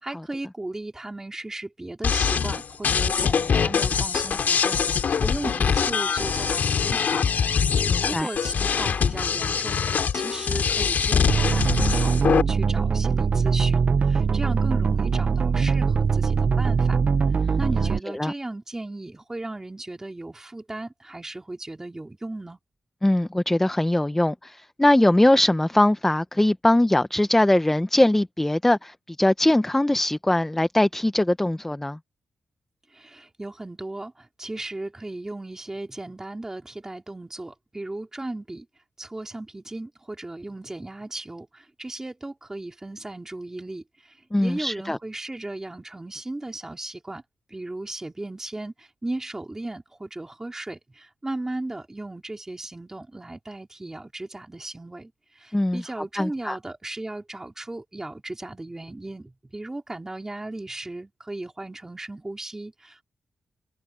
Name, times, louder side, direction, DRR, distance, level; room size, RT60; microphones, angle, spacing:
voice 1, 0.0-7.2 7.8-17.0 17.6-22.6 32.9-38.7 39.0-47.2 47.5-63.0, right 2 dB, 15° right, 3.6 m, -36 dB
sound 1, 2.0-12.4, left 6 dB, 60° left, 2.1 m, -23 dB
voice 2, 7.9-8.3 18.2-18.3 23.0-32.0 44.3-45.0 55.5-55.8 56.2-56.6, left 1 dB, 10° left, 0.6 m, -21 dB
sound 2, 11.3-18.0, right 5 dB, 40° right, 0.4 m, -22 dB
wide cardioid pair, 140°, 3 cm